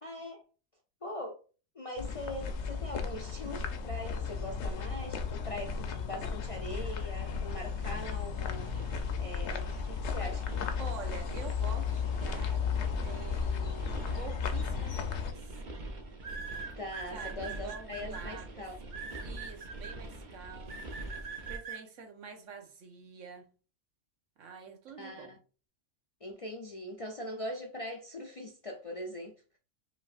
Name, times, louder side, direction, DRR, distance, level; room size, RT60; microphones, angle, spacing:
voice 1, 0.0-0.4 1.0-1.4 1.7-8.7 9.2-10.7 16.8-18.8 25.0-25.4 26.2-29.3, left 1 dB, 45° left, 0.4 m, -41 dB
sound 1, 2.0-15.3, left 6 dB, 70° left, 0.9 m, -34 dB
sound 2, 7.2-21.6, right 2 dB, 45° right, 0.7 m, -45 dB
voice 2, 10.8-15.6 17.1-21.2 21.5-23.5 24.4-25.4, right 5 dB, 90° right, 1.2 m, -47 dB
sound 3, 14.7-15.0 16.2-18.2 18.9-20.0 20.7-21.8, right 5 dB, 75° right, 1.3 m, -42 dB
5.4 x 2.7 x 2.4 m
omnidirectional pair, 1.3 m